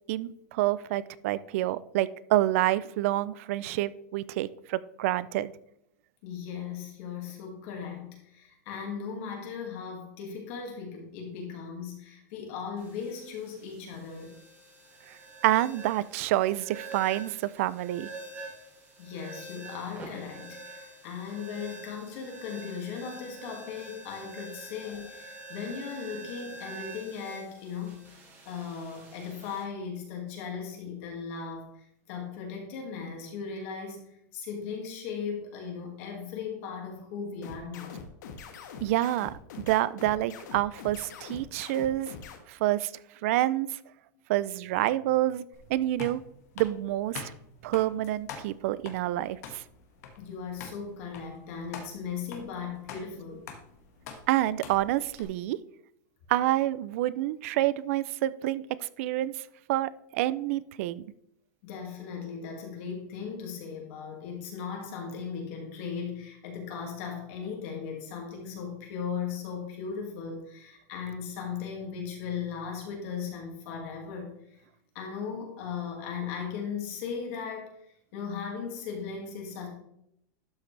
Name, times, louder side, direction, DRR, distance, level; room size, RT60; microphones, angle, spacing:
voice 1, 0.1-5.5 15.4-18.1 38.8-42.1 42.5-42.9 43.2-43.7 44.3-45.4 45.7-46.2 46.6-47.2 47.6-49.6 54.3-55.6 56.3-59.3 59.7-61.0, right 15 dB, 50° right, 18 dB, 0.4 m, -28 dB
voice 2, 6.2-14.4 19.0-28.0 28.5-38.0 50.2-53.5 61.6-74.3 74.9-77.7 78.1-79.7, left 6 dB, 45° left, 1 dB, 2.0 m, -37 dB
sound 1, 12.8-29.6, right 3 dB, 20° right, 2.7 m, -46 dB
sound 2, 37.4-42.4, left 6 dB, 75° left, 1.5 m, -43 dB
sound 3, 45.5-55.2, left 6 dB, 60° left, 1.6 m, -46 dB
12.0 x 5.9 x 3.2 m, 0.74 s
supercardioid pair, 170°, 10 cm